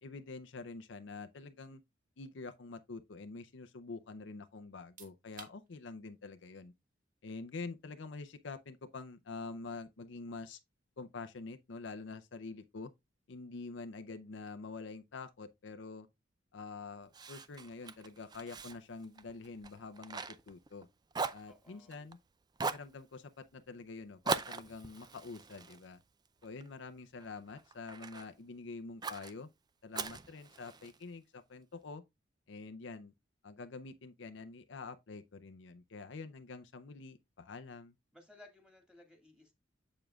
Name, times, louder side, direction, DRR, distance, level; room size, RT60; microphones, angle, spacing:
voice 1, 0.0-1.8 2.2-6.7 7.2-10.6 11.0-12.9 13.3-16.1 16.5-20.9 21.3-22.2 22.6-26.0 26.4-29.5 29.8-32.0 32.5-33.1 33.4-37.9, left 4 dB, 65° left, 0.6 m, -46 dB
sound 1, 4.7-17.4, right 5 dB, 45° right, 1.7 m, -65 dB
Fire, 17.1-20.8 21.1-22.2 22.6-22.9 24.2-26.7 27.2-28.3 29.0-29.3 29.9-31.0, right 4 dB, 20° right, 0.4 m, -40 dB
voice 2, 21.5-22.1 38.1-39.5, left 2 dB, 5° right, 2.1 m, -59 dB
7.5 x 6.9 x 2.3 m
head